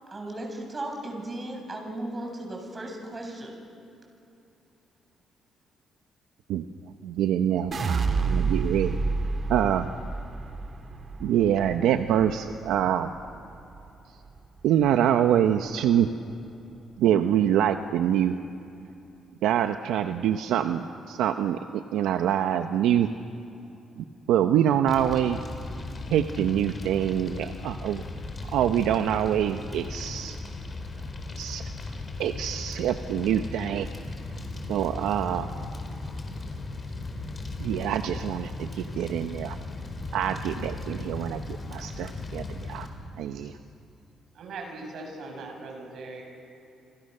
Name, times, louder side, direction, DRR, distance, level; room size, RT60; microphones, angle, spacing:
voice 1, 0.1-3.6, right 1 dB, 30° right, 2 dB, 7.5 m, -36 dB
voice 2, 7.0-9.0 9.5-9.9 11.2-13.1 14.6-16.1 17.0-18.4 19.4-23.1 24.0-25.4 26.1-28.0 28.5-30.4 31.4-31.6 32.2-33.9 34.7-35.5 37.6-39.6 40.1-42.9 43.2-43.5, right 10 dB, 90° right, 7 dB, 0.9 m, -25 dB
sound 1, 7.7-13.9 14.3-14.9, right 4 dB, 45° right, 2.3 m, -30 dB
Fire, 24.9-42.9, left 2 dB, 30° left, 4.5 m, -37 dB
voice 3, 44.3-46.2, right 3 dB, 70° right, 2 dB, 7.0 m, -40 dB
29.0 x 26.5 x 6.7 m, 2.8 s
cardioid pair, 90°, 0 cm